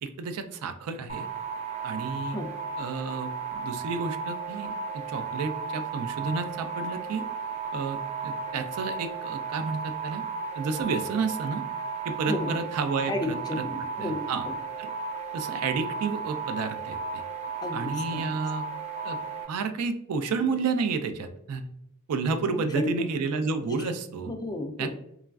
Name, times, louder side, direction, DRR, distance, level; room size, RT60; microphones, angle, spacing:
voice 1, 0.0-1.3 1.8-2.4 2.8-7.2 7.7-10.2 10.6-11.6 12.0-13.6 14.0-14.5 14.8-14.9 15.3-17.2 17.7-18.6 19.0-19.2 19.5-21.6 22.1-24.3 24.8-24.9, right 4 dB, 80° right, 9 dB, 0.4 m, -31 dB
sound 1, 1.1-19.4, right 5 dB, 30° right, 0.7 m, -34 dB
voice 2, 13.1-14.2 17.6-18.3 22.5-23.0 24.3-24.9, left 1 dB, 20° left, 4 dB, 0.3 m, -32 dB
3.0 x 2.4 x 2.3 m, 0.74 s
head